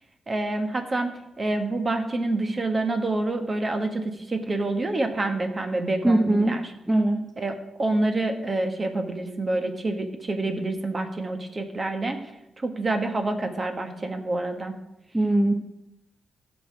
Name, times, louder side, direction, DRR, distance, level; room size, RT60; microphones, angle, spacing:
voice 1, 0.3-1.1 1.4-6.7 7.4-12.2 12.6-14.7, right 2 dB, 30° right, 6 dB, 1.5 m, -27 dB
voice 2, 6.0-6.5 6.9-7.2 15.1-15.6, right 1 dB, 10° right, 3 dB, 0.9 m, -20 dB
16.0 x 6.6 x 4.8 m, 0.89 s
cardioid pair, 110°, 0 cm